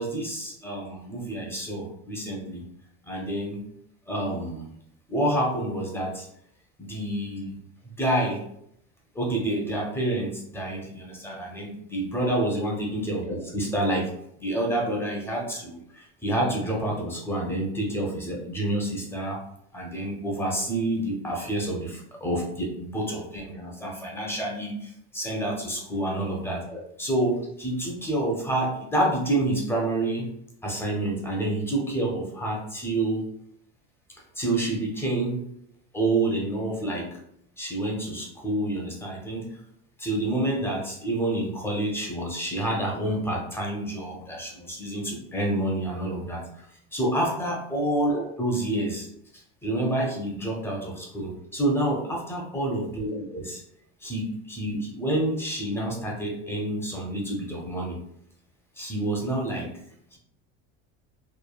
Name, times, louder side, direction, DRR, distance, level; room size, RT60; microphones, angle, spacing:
voice 1, 0.0-2.6 3.1-3.6 4.1-4.7 5.1-6.3 6.8-7.6 8.0-8.4 9.1-14.1 14.4-19.4 19.7-30.3 30.6-33.3 34.4-35.5 35.9-37.2 37.6-39.5 40.0-46.4 46.9-49.1 49.6-53.6 54.0-58.0 58.8-59.7 60.1-60.2, right 1 dB, 5° left, -2 dB, 0.6 m, -28 dB
3.1 x 2.1 x 2.3 m, 0.73 s
cardioid pair, 140°, 32 cm